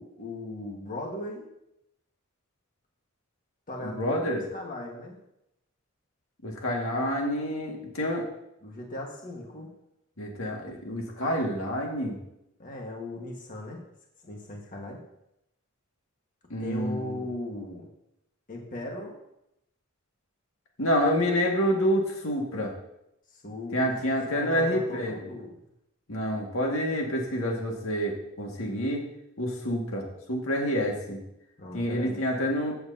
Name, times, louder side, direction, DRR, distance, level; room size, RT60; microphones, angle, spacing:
voice 1, 0.0-1.5 3.7-5.2 8.6-9.7 12.6-13.8 14.2-15.0 16.6-17.9 18.5-19.2 23.3-23.9 24.2-25.6 31.6-32.2, left 1 dB, 40° left, 0 dB, 1.6 m, -38 dB
voice 2, 3.8-4.4 6.4-8.3 10.2-12.2 16.5-17.2 20.8-22.7 23.7-25.2 26.1-29.0 29.4-31.2 31.7-32.7, equal, 85° left, 0 dB, 2.0 m, -28 dB
14.5 x 7.9 x 2.8 m, 0.82 s
head